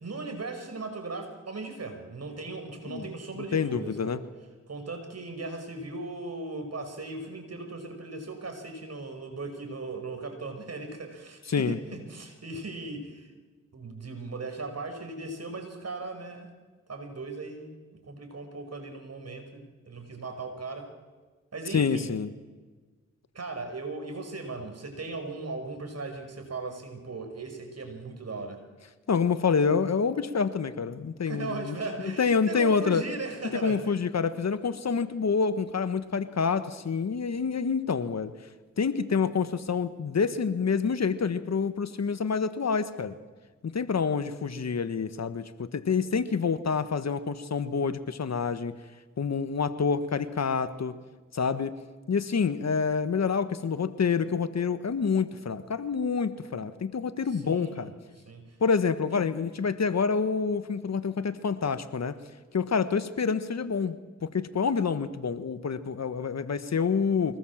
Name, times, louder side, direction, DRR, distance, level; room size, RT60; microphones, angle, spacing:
voice 1, 0.0-4.2 4.7-13.3 13.7-16.5 16.9-17.7 18.0-20.9 21.5-22.1 23.3-28.6 31.3-34.0 57.3-57.9 58.3-58.5, right 3 dB, 50° right, 6 dB, 5.6 m, -38 dB
voice 2, 3.4-4.2 11.5-11.8 21.7-22.3 29.1-31.8 32.0-33.1 33.6-38.3 38.8-43.1 43.6-48.8 49.2-50.9 51.3-51.7 52.1-57.9 58.6-62.2 62.5-64.0 64.2-67.4, left 5 dB, 55° left, 12 dB, 1.5 m, -27 dB
24.0 x 19.5 x 7.5 m, 1.3 s
cardioid pair, 55°, 31 cm